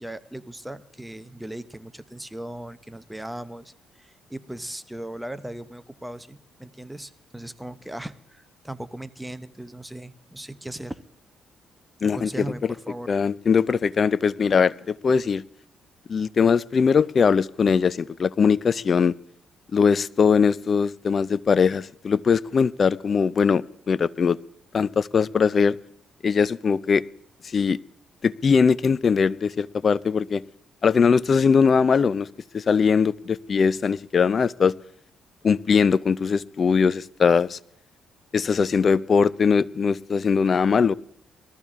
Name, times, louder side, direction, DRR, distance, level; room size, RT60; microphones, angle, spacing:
voice 1, 0.0-11.0 12.1-13.3, right 1 dB, 5° right, 14 dB, 0.7 m, -38 dB
voice 2, 12.0-12.7 13.1-15.4 16.1-19.1 19.7-24.4 24.7-25.8 26.2-27.0 27.4-27.8 28.2-30.4 30.8-32.3 32.5-34.7 35.4-37.6 38.3-40.9, left 6 dB, 45° left, 21 dB, 0.5 m, -21 dB
20.5 x 14.0 x 3.6 m, 0.70 s
cardioid pair, 90°, 0 cm